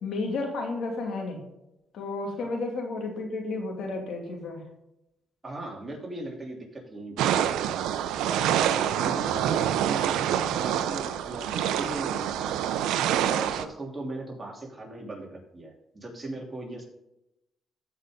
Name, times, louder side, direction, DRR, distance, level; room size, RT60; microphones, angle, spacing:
voice 1, 0.0-1.4 1.9-4.6, left 3 dB, 70° left, 1 dB, 2.6 m, -32 dB
voice 2, 5.4-7.6 8.2-12.6 13.2-16.8, right 2 dB, 25° right, -1 dB, 3.1 m, -38 dB
sound 1, 7.2-13.7, right 10 dB, 90° right, 0.6 m, -26 dB
15.0 x 5.6 x 3.8 m, 0.88 s
cardioid pair, 90°, 0 cm